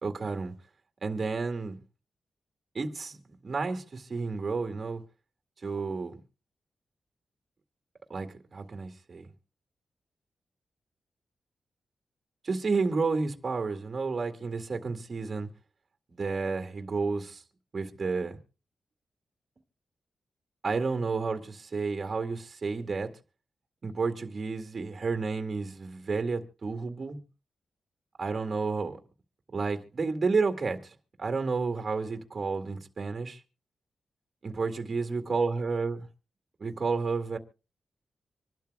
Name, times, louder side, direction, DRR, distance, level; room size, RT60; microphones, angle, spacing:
voice 1, 0.0-0.5 1.0-1.8 2.7-3.2 3.4-5.0 5.6-6.2 8.1-9.3 12.4-15.5 16.1-17.4 17.7-18.4 20.6-23.1 23.8-27.2 28.2-29.0 29.5-33.4 34.4-36.0 36.6-37.4, right 4 dB, 40° right, 2.1 m, -31 dB
26.0 x 12.0 x 2.3 m
wide cardioid pair, 125°, 0 cm